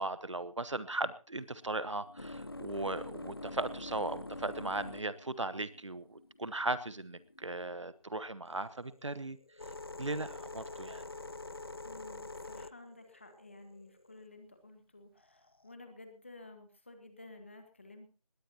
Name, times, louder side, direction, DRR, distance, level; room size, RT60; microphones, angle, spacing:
voice 1, 0.0-9.4 10.0-11.0, right 2 dB, 55° right, 15 dB, 1.1 m, -37 dB
sound 1, 1.4-7.7 8.5-14.2 15.2-15.7, left 2 dB, 40° left, 0.6 m, -46 dB
voice 2, 11.8-18.1, left 2 dB, 20° left, 7 dB, 1.7 m, -53 dB
20.0 x 17.0 x 2.9 m, 0.34 s
figure-of-eight pair, 180°, 19 cm